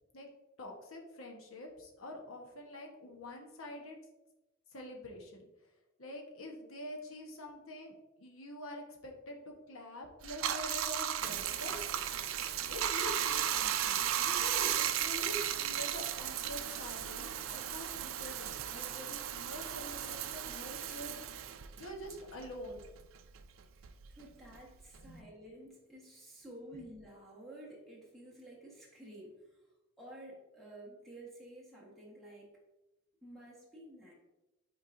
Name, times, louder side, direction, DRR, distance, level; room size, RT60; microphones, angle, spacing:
voice 1, 0.6-4.0 4.7-5.7 6.0-11.8 12.7-21.2 21.8-22.8 25.0-25.3, left 1 dB, 85° left, 1 dB, 1.1 m, -46 dB
Bathtub (filling or washing), 10.2-23.0 23.4-25.2, right 10 dB, 75° right, 0.4 m, -35 dB
voice 2, 23.7-29.6 30.0-32.6 33.2-34.1, right 1 dB, ahead, -5 dB, 1.2 m, -52 dB
8.5 x 4.4 x 2.6 m, 1.0 s
head